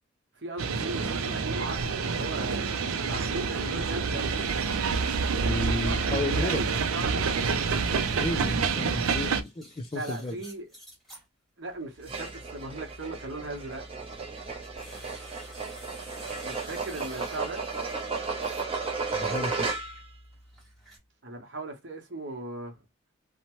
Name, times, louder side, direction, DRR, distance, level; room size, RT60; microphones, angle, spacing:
voice 1, 0.4-2.6 2.9-4.4 5.7-7.2 7.9-8.1 9.9-10.7 11.6-13.8 16.4-17.7 21.2-22.8, right 2 dB, 60° right, 1.0 m, -38 dB
sound 1, 0.6-9.4, right 5 dB, 90° right, 0.4 m, -28 dB
voice 2, 5.4-6.6 8.2-10.4 19.1-19.7, left 2 dB, 25° left, 0.3 m, -32 dB
sound 2, 7.6-11.2 11.6-13.2 13.7-18.9 19.2-21.0, right 1 dB, ahead, 1.1 m, -51 dB
sound 3, 12.0-20.1, right 4 dB, 25° right, 0.7 m, -34 dB
2.8 x 2.1 x 2.9 m
head